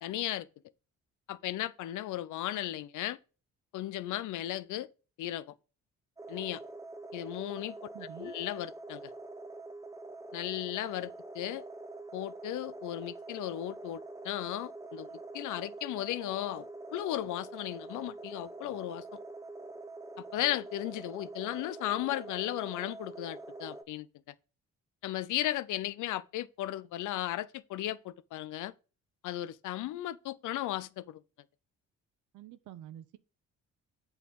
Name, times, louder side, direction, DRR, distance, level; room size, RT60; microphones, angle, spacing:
voice 1, 0.0-0.5 1.3-3.2 3.7-4.9 5.2-5.5 6.3-6.6 7.1-7.8 8.2-9.1 10.3-11.6 12.1-16.7 16.9-19.0 20.2-24.1 25.0-28.7 29.2-31.2, left 14 dB, 80° left, 0.6 m, -35 dB
sound 1, 6.2-23.8, right 2 dB, 10° right, 1.0 m, -45 dB
voice 2, 7.9-8.4 32.3-33.2, right 12 dB, 80° right, 0.7 m, -48 dB
8.4 x 4.1 x 5.2 m
cardioid pair, 90°, 30 cm